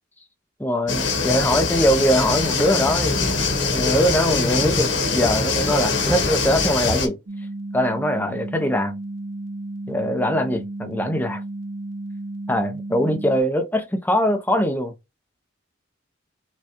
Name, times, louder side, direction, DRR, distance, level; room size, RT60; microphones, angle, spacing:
voice 1, 0.6-7.2 7.7-8.9 9.9-11.4 12.5-14.9, equal, 10° left, 0.7 m, -22 dB
sound 1, 0.9-7.1, left 4 dB, 70° left, 1.2 m, -23 dB
sound 2, 7.3-13.4, right 2 dB, 90° right, 0.7 m, -33 dB
5.9 x 2.3 x 2.8 m
head